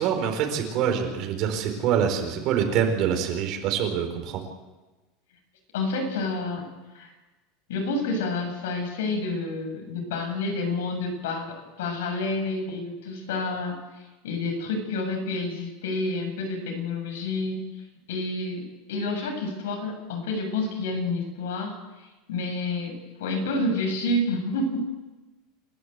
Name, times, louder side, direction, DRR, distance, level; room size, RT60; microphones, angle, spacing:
voice 1, 0.0-4.4, right 8 dB, 45° right, 4 dB, 4.4 m, -25 dB
voice 2, 5.7-6.7 6.9-7.1 7.7-17.8 18.1-22.9 23.2-24.8, left 2 dB, 90° left, 3 dB, 7.7 m, -29 dB
29.5 x 12.5 x 8.2 m, 1.2 s
supercardioid pair, 150°, 0 cm